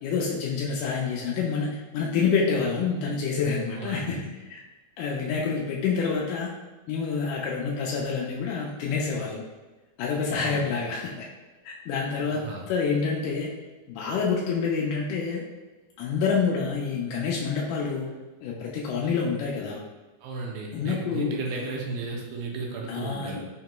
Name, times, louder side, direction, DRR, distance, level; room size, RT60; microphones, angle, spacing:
voice 1, 0.0-4.2 4.5-4.6 5.0-6.5 6.9-9.4 10.0-11.3 11.6-13.5 13.9-15.4 16.0-18.1 18.4-19.8 20.7-21.8 22.9-23.4, left 5 dB, 85° left, -3 dB, 1.8 m, -27 dB
voice 2, 3.7-4.3 10.3-10.6 12.3-12.7 20.2-23.5, right 3 dB, 85° right, 0 dB, 2.4 m, -35 dB
5.8 x 2.8 x 2.2 m, 1.2 s
omnidirectional pair, 4.1 m